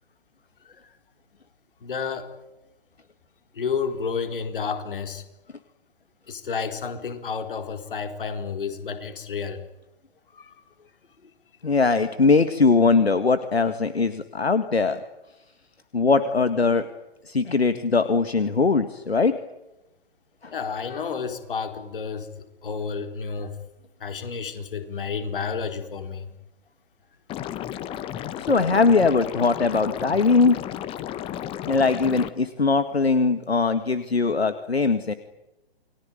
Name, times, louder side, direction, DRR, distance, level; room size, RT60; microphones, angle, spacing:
voice 1, 1.8-2.3 3.5-5.2 6.3-9.6 10.3-10.5 20.5-22.3 22.6-23.5 24.0-26.3, left 5 dB, 55° left, 7 dB, 4.3 m, -30 dB
voice 2, 11.6-15.0 15.9-16.9 17.3-19.4 20.4-20.5 28.4-30.6 31.7-35.1, left 4 dB, 75° left, 10 dB, 1.9 m, -21 dB
Liquid, 27.3-32.3, left 11 dB, 15° left, 1.3 m, -33 dB
29.5 x 22.0 x 9.3 m, 0.95 s
figure-of-eight pair, 125°, 31 cm